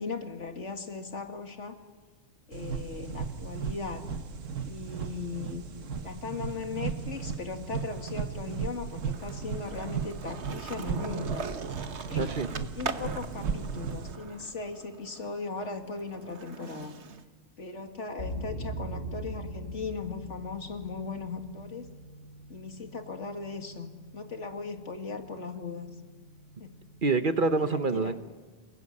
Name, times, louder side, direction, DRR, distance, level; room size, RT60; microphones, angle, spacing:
voice 1, 0.0-1.8 2.5-4.0 4.6-5.6 6.0-11.5 12.1-16.9 17.6-21.9 22.5-25.9 26.6-26.7 27.6-28.2, left 4 dB, 70° left, 6 dB, 2.4 m, -38 dB
sound 1, 2.5-14.2, right 6 dB, 85° right, 1.6 m, -36 dB
Skateboard, 5.1-6.7 7.0-17.2, right 5 dB, 65° right, 1.5 m, -42 dB
voice 2, 12.1-12.5 27.0-28.2, right 3 dB, 45° right, 10 dB, 1.1 m, -26 dB
sound 2, 18.2-27.2, right 1 dB, 50° left, 8.3 m, -43 dB
29.5 x 20.0 x 9.8 m, 1.4 s
omnidirectional pair, 1.3 m